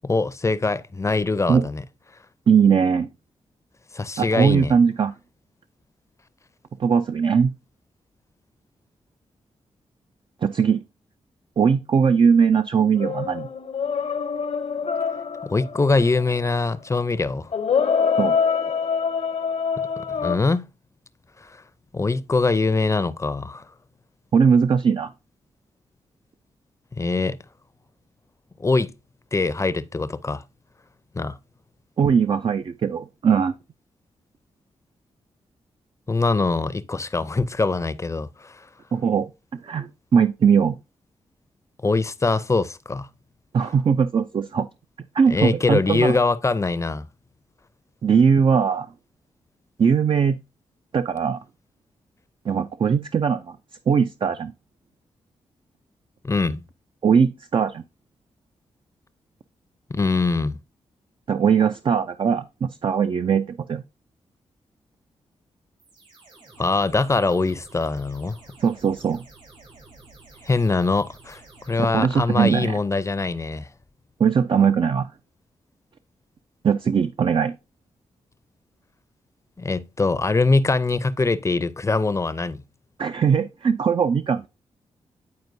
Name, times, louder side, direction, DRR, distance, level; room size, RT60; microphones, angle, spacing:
voice 1, 0.0-1.8 3.9-4.7 15.4-17.5 20.1-20.7 21.4-21.6 21.9-23.7 27.0-27.4 28.6-28.9 29.3-30.4 31.1-31.4 36.1-38.6 41.8-43.1 45.3-47.1 56.2-56.6 59.9-60.6 66.6-68.4 70.4-71.4 71.7-73.7 79.6-82.6, left 3 dB, 25° left, 0.5 m, -23 dB
voice 2, 2.5-3.1 4.2-5.1 6.8-7.5 10.4-10.8 11.6-13.5 18.2-18.4 24.3-25.1 32.0-33.5 38.9-39.3 39.6-40.8 43.5-44.7 45.1-46.2 48.0-48.9 49.8-50.4 50.9-51.4 52.5-53.6 53.9-54.5 57.0-57.8 61.3-63.8 68.6-69.2 71.8-72.8 74.2-75.1 76.6-77.5 83.0-84.5, right 6 dB, 45° right, 0.4 m, -20 dB
sound 1, 13.0-16.2 17.5-20.4, left 6 dB, 65° left, 0.8 m, -25 dB
sound 2, 65.8-72.6, right 2 dB, 75° right, 3.3 m, -50 dB
9.5 x 4.3 x 2.6 m
cardioid pair, 50°, 12 cm